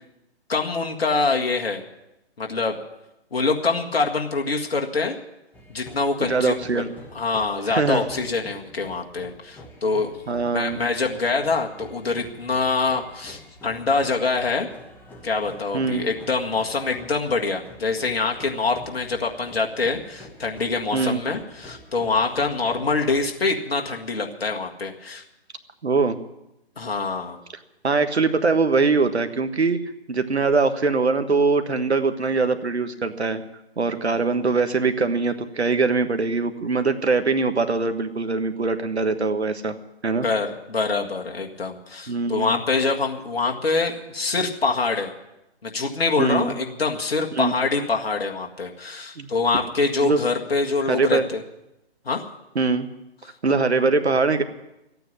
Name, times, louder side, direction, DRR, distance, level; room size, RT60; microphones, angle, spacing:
voice 1, 0.5-1.8 2.4-2.8 3.3-5.2 5.7-6.8 7.2-10.1 10.5-14.7 15.2-25.2 26.8-27.4 40.2-45.1 45.6-51.4 52.1-52.2, left 4 dB, 65° left, 2 dB, 1.9 m, -25 dB
sound 1, 5.5-23.3, left 1 dB, 5° left, 1.2 m, -46 dB
voice 2, 6.2-6.9 7.7-8.1 10.3-10.8 15.7-16.1 20.9-21.2 25.8-26.2 27.8-33.4 33.8-39.7 40.0-40.3 42.1-42.6 46.2-46.5 47.3-47.5 49.2-49.3 50.0-50.2 50.8-51.2 52.5-52.9 53.4-54.4, right 4 dB, 80° right, 9 dB, 1.5 m, -22 dB
13.5 x 9.2 x 9.8 m, 0.91 s
figure-of-eight pair, 140°, 32 cm